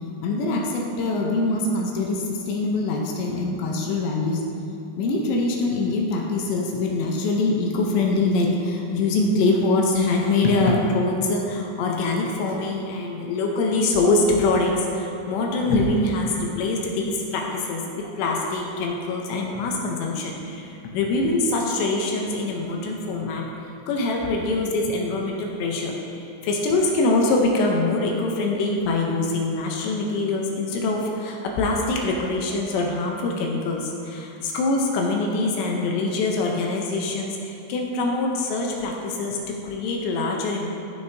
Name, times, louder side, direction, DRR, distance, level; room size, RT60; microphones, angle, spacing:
voice 1, 0.2-4.4 5.0-23.5 23.9-40.7, left 2 dB, 80° left, 0 dB, 2.8 m, -24 dB
14.0 x 6.4 x 2.7 m, 2.7 s
omnidirectional pair, 5.4 m